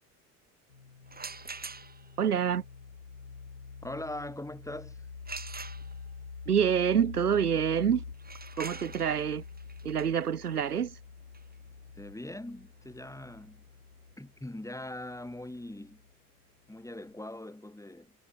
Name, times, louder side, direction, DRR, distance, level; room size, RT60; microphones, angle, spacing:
sound 1, 0.7-16.1, left 5 dB, 90° left, 3.4 m, -47 dB
sound 2, 1.1-2.2 5.3-6.3 8.1-13.8, right 4 dB, 20° right, 3.0 m, -45 dB
voice 1, 2.2-2.6 6.5-8.0 8.6-9.4 9.8-11.0, right 8 dB, 85° right, 2.0 m, -27 dB
voice 2, 3.8-5.1 11.9-13.6 14.2-16.0 16.7-18.1, left 1 dB, 5° left, 6.3 m, -41 dB
figure-of-eight pair, 60°, 44 cm